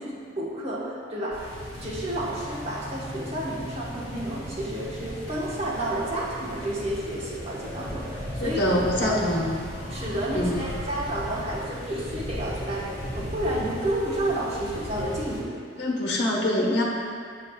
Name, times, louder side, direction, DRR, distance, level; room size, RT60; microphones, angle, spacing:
voice 1, 0.0-8.6 9.0-9.2 9.9-15.5, right 1 dB, 35° right, -5 dB, 1.2 m, -31 dB
sound 1, 1.3-15.4, equal, 30° left, 1.7 m, -38 dB
sound 2, 1.7-13.6, equal, 60° right, 1.7 m, -42 dB
voice 2, 8.4-9.5 10.3-10.6 15.8-16.8, left 1 dB, 65° left, -3 dB, 1.1 m, -24 dB
8.1 x 7.5 x 2.3 m, 2.1 s
head